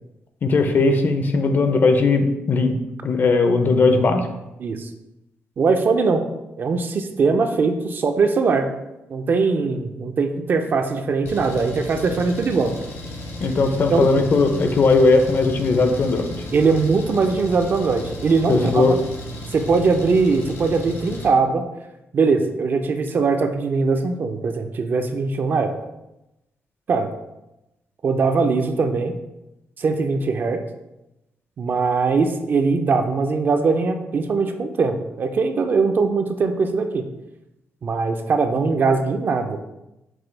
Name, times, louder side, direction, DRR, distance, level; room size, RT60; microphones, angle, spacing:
voice 1, 0.4-2.8 3.0-4.3 13.4-16.4 18.5-19.0, left 3 dB, 45° left, 7 dB, 0.5 m, -18 dB
voice 2, 5.6-6.2 6.6-8.7 9.1-12.7 13.9-14.1 16.5-19.0 19.5-21.6 22.1-25.7 26.9-27.1 28.0-29.1 29.8-30.6 31.6-37.0 37.8-39.6, right 4 dB, 45° right, 6 dB, 0.4 m, -21 dB
Engine, 11.3-21.3, left 1 dB, 70° left, 1.1 m, -34 dB
6.0 x 2.2 x 3.2 m, 0.93 s
cardioid pair, 115°, 5 cm